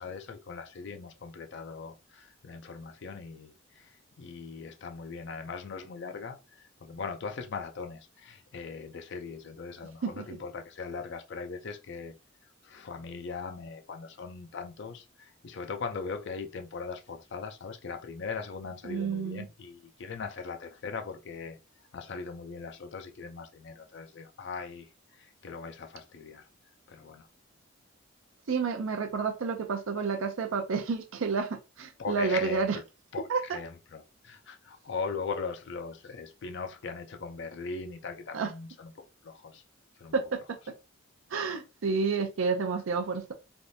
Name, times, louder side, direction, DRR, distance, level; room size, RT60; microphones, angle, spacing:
voice 1, 0.0-12.2 12.6-21.6 21.9-26.5 26.9-27.3 32.0-32.8 33.1-38.9 39.2-39.6 40.0-40.1, left 5 dB, 55° left, 0.4 m, -40 dB
voice 2, 18.8-19.5 28.5-32.8 33.3-33.6 38.3-38.5 40.1-40.4 41.3-43.3, right 5 dB, 70° right, 0.5 m, -30 dB
3.4 x 2.5 x 2.6 m
head